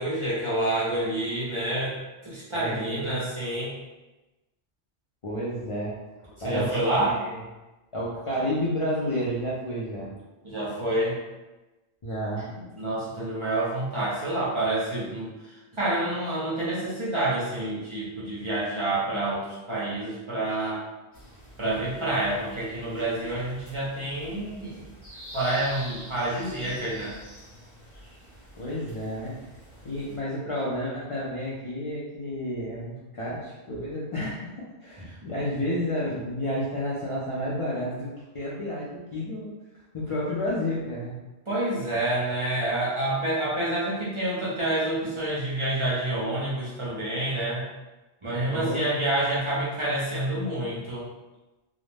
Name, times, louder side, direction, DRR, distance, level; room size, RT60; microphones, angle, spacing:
voice 1, 0.0-3.7 6.4-7.2 10.4-11.2 12.6-20.9 21.6-24.9 25.3-27.1 35.0-35.1 41.5-47.6 48.2-51.1, right 1 dB, 35° right, -8 dB, 0.5 m, -28 dB
voice 2, 2.5-3.2 5.2-5.9 6.4-7.4 7.9-10.1 12.0-12.5 28.6-29.4 29.8-39.5 39.9-41.1 48.5-48.8, equal, 50° left, -6 dB, 0.4 m, -31 dB
Rain in the Backyard, 21.1-30.2, equal, 15° left, 0.8 m, -46 dB
2.5 x 2.0 x 3.2 m, 1.1 s
omnidirectional pair, 1.1 m